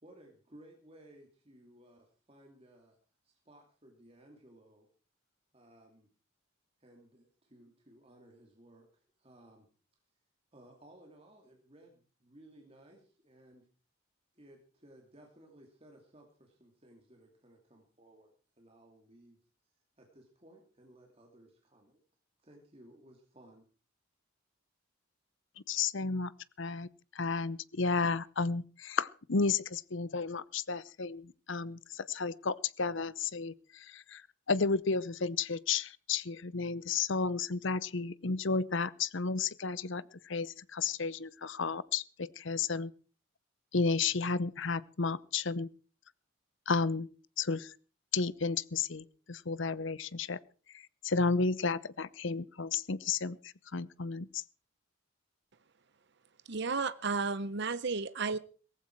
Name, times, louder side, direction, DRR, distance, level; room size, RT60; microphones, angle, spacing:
voice 1, 0.0-3.0 3.2-4.9 5.5-6.1 6.8-9.7 10.5-13.7 14.3-22.0 22.4-23.7, right 1 dB, 25° right, 1 dB, 2.7 m, -59 dB
voice 2, 25.7-26.3 26.6-26.9 27.1-34.2 34.5-42.9 43.7-45.7 46.7-47.1 47.4-47.7 48.1-50.4 50.7-54.4, left 4 dB, 60° left, 18 dB, 0.8 m, -32 dB
voice 3, 56.5-58.4, right 4 dB, 55° right, 15 dB, 0.7 m, -33 dB
18.0 x 15.0 x 4.6 m, 0.38 s
head